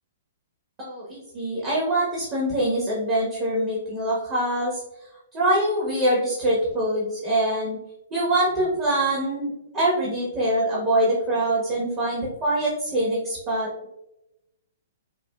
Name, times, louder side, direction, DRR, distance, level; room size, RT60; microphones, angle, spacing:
voice 1, 0.8-4.8 5.3-7.8 8.1-13.7, right 1 dB, 30° right, -5 dB, 1.1 m, -24 dB
5.0 x 2.2 x 2.3 m, 0.90 s
hypercardioid pair, 125°, 0 cm